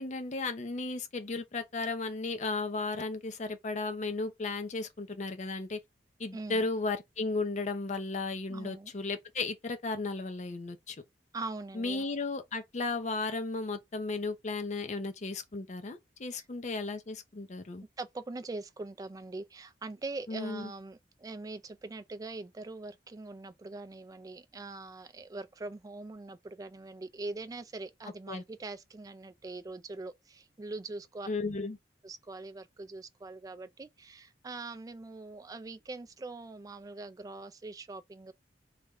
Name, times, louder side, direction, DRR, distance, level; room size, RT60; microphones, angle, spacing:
voice 1, 0.0-5.8 6.2-11.0 11.7-17.8 20.3-20.7 28.3-28.4 31.3-31.8, left 3 dB, 40° left, 0.5 m, -35 dB
voice 2, 6.3-6.7 8.5-8.9 11.3-12.1 16.3-16.5 18.0-31.3 32.0-38.3, right 3 dB, 20° right, 0.3 m, -42 dB
3.3 x 2.1 x 3.5 m
head